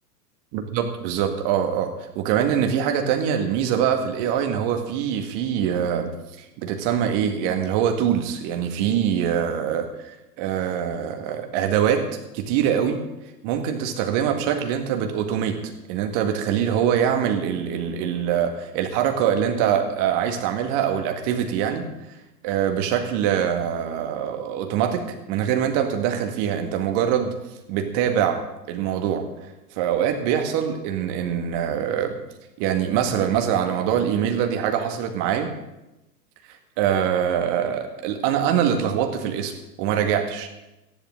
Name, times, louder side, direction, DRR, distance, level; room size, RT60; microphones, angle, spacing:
voice 1, 0.5-6.1 6.4-12.1 12.3-13.0 13.4-15.6 15.9-21.9 22.4-27.3 27.7-28.4 28.7-29.2 29.8-32.2 32.6-35.5 36.8-39.5 39.8-40.5, right 9 dB, 35° right, 5 dB, 2.0 m, -23 dB
18.5 x 13.0 x 3.9 m, 0.95 s
figure-of-eight pair, 105°, 49 cm